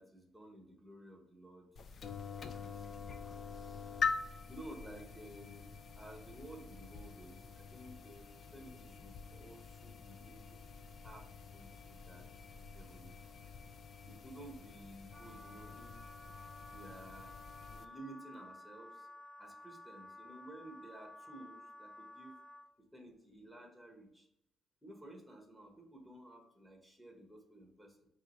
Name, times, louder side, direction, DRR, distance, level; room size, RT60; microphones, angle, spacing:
voice 1, 0.0-1.7 2.6-3.9 4.2-10.6 11.0-12.4 12.7-13.4 14.0-16.1 16.7-17.4 17.7-19.1 19.4-22.4 22.9-24.3 24.8-28.1, right 1 dB, ahead, 1 dB, 1.2 m, -54 dB
sound 1, 1.8-17.9, left 5 dB, 55° left, 0.4 m, -45 dB
Wind instrument woodwind instrument, 15.1-22.7, left 1 dB, 25° left, 1.1 m, -53 dB
4.7 x 3.0 x 3.1 m, 0.79 s
cardioid pair, 90°, 0 cm